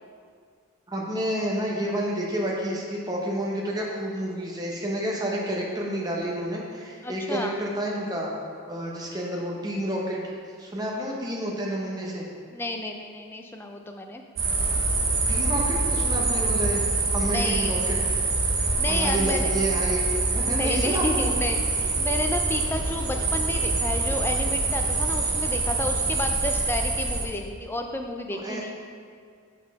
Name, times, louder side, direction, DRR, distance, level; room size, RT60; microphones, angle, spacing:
voice 1, 0.9-8.3 8.7-12.2 15.3-16.8 17.1-18.0 18.9-21.3 28.3-28.6, right 1 dB, 15° right, -2 dB, 0.8 m, -29 dB
voice 2, 7.0-7.6 12.5-14.2 17.3-17.9 18.8-19.5 20.4-28.7, left 2 dB, 10° left, 3 dB, 0.3 m, -31 dB
sound 1, 14.4-27.2, right 3 dB, 65° right, 1.0 m, -25 dB
6.3 x 4.1 x 4.7 m, 2.1 s
head